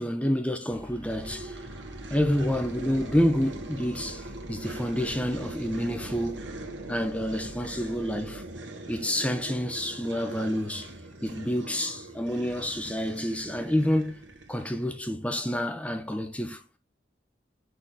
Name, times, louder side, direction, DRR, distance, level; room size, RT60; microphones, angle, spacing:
voice 1, 0.0-1.6 2.1-6.6 6.9-8.4 8.9-10.9 11.2-14.1 14.5-16.6, equal, 5° left, 1.0 m, -28 dB
sound 1, 0.7-8.4, right 1 dB, 20° right, 0.7 m, -48 dB
sound 2, 1.1-15.0, right 2 dB, 85° right, 1.7 m, -41 dB
6.5 x 3.9 x 6.1 m
head